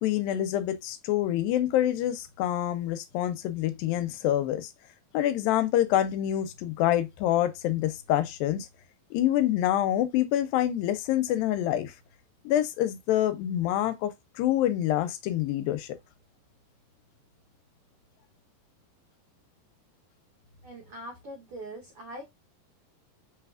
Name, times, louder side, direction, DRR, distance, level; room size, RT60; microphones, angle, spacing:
voice 1, 0.0-4.7 5.1-8.7 9.1-11.9 12.5-16.0, left 12 dB, 90° left, 2.4 m, -26 dB
voice 2, 20.6-22.2, right 1 dB, 85° right, 1.2 m, -42 dB
5.9 x 3.3 x 2.3 m
omnidirectional pair, 4.1 m